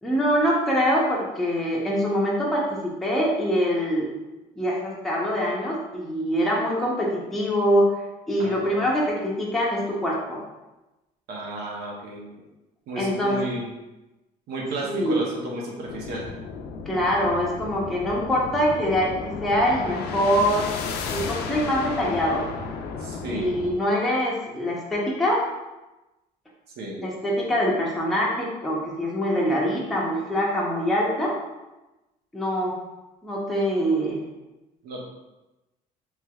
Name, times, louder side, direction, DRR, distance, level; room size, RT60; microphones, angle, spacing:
voice 1, 0.0-4.1 4.6-7.9 8.3-10.4 13.0-13.4 14.9-15.2 16.9-19.1 19.4-20.7 21.1-22.5 23.3-25.5 27.0-31.4 32.3-32.8 33.2-34.2, equal, ahead, -5 dB, 0.6 m, -24 dB
voice 2, 11.3-12.3 12.9-13.7 14.5-16.2 23.0-23.5 26.8-27.0 34.8-35.0, right 1 dB, 75° right, -2 dB, 0.7 m, -32 dB
sound 1, 15.9-23.7, left 5 dB, 70° left, 0.4 m, -33 dB
3.2 x 3.0 x 2.2 m, 1.0 s
cardioid pair, 110°, 17 cm